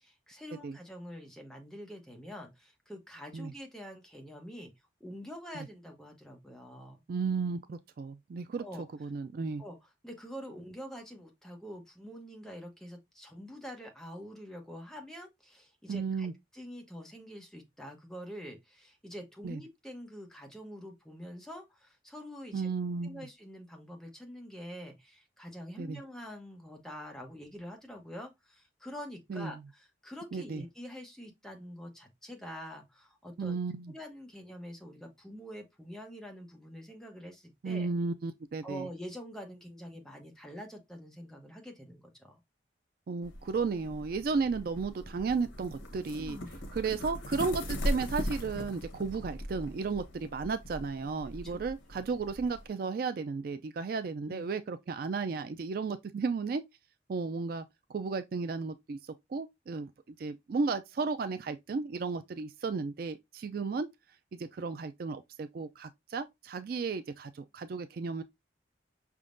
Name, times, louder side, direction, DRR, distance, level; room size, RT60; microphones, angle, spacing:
voice 1, 0.0-4.7 5.0-7.0 8.6-8.8 9.6-9.8 10.0-22.7 23.0-33.6 33.9-37.9 38.6-42.4 46.1-46.5 51.4-51.6 51.9-52.0 54.3-54.5, equal, 5° left, 0.9 m, -46 dB
voice 2, 7.1-8.6 9.0-9.6 15.9-16.3 19.4-19.6 22.5-23.3 25.8-26.0 29.3-29.6 30.3-30.6 33.4-33.9 37.6-38.9 43.1-46.4 46.7-56.6 57.1-57.6 57.9-63.9 64.3-68.2, right 4 dB, 50° right, 0.3 m, -34 dB
sound 1, 43.2-52.7, equal, 85° left, 1.1 m, -39 dB
5.5 x 3.6 x 2.5 m
head